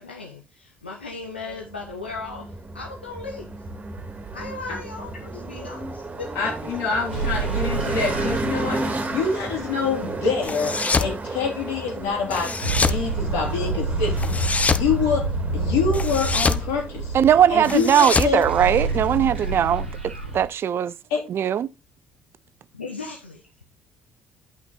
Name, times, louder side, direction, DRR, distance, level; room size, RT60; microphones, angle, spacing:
voice 1, 0.0-3.6 4.3-6.3 22.7-23.4, left 4 dB, 90° left, 0.9 m, -37 dB
sound 1, 1.5-18.9, right 2 dB, 30° right, 1.6 m, -33 dB
voice 2, 6.3-14.3 14.7-17.1 17.5-18.4 21.1-21.2, left 5 dB, 70° left, 3.5 m, -26 dB
sound 2, 7.1-10.0 12.6-18.0 18.2-20.5, right 3 dB, 90° right, 1.3 m, -28 dB
sound 3, 10.4-11.2 12.3-13.0 14.2-14.9 15.9-16.7 17.6-19.2, left 4 dB, 25° left, 0.7 m, -25 dB
voice 3, 17.1-20.9 21.3-21.7, right 9 dB, 45° right, 0.5 m, -20 dB
9.6 x 5.9 x 3.9 m
figure-of-eight pair, 50°, 6 cm